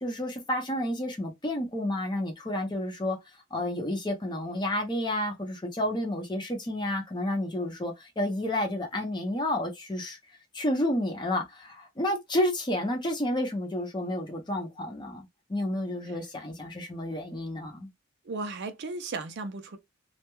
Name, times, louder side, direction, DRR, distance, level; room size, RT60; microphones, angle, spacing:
voice 1, 0.0-3.2 3.5-10.2 10.5-17.9, left 1 dB, 20° left, 0.6 m, -30 dB
voice 2, 18.3-19.8, right 3 dB, 55° right, 0.4 m, -35 dB
2.2 x 2.1 x 2.9 m
head